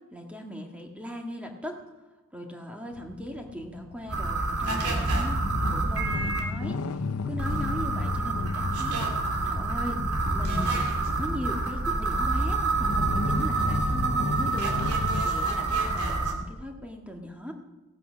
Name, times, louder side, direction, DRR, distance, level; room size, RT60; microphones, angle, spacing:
voice 1, 0.1-1.8 2.3-5.4 5.7-6.8 7.2-9.1 9.4-10.0 10.3-10.9 11.2-17.5, left 1 dB, 5° right, 2 dB, 1.7 m, -38 dB
sound 1, 2.9-15.2, left 3 dB, 75° left, 0.6 m, -34 dB
sound 2, 4.1-6.4 7.4-16.3, right 3 dB, 85° right, 2.5 m, -27 dB
16.5 x 9.3 x 6.2 m, 1.1 s
head